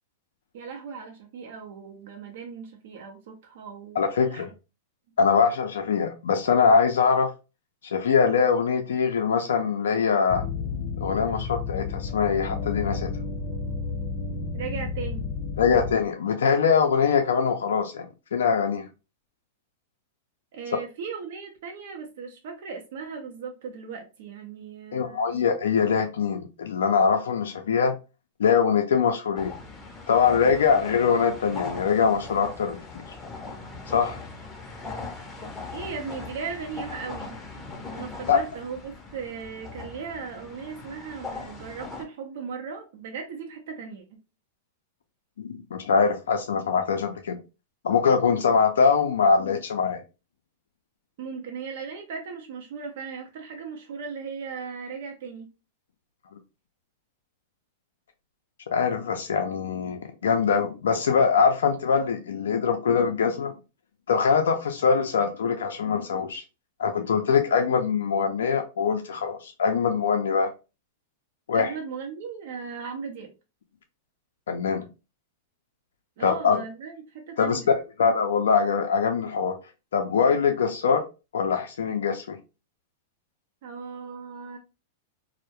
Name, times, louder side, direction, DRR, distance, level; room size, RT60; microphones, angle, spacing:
voice 1, 0.5-4.5 14.5-15.3 20.5-25.5 35.7-37.4 37.9-44.0 51.2-55.5 71.5-73.3 76.2-77.7 83.6-84.6, right 5 dB, 65° right, 0.5 m, -37 dB
voice 2, 3.9-4.5 5.2-7.3 7.8-10.4 11.0-13.1 15.6-18.9 24.9-28.0 28.4-29.6 30.1-33.0 33.9-34.2 38.3-38.4 45.4-47.4 47.8-50.0 58.7-63.6 64.1-66.4 66.8-70.5 71.5-71.7 74.5-74.9 76.2-76.6 77.4-77.6 78.0-79.5 79.9-81.0 81.3-82.4, left 6 dB, 90° left, 0.4 m, -23 dB
sound 1, 10.3-15.9, left 4 dB, 45° left, 0.7 m, -31 dB
sound 2, 29.4-42.1, left 3 dB, 10° left, 0.5 m, -40 dB
2.2 x 2.0 x 2.8 m
hypercardioid pair, 135°, 0 cm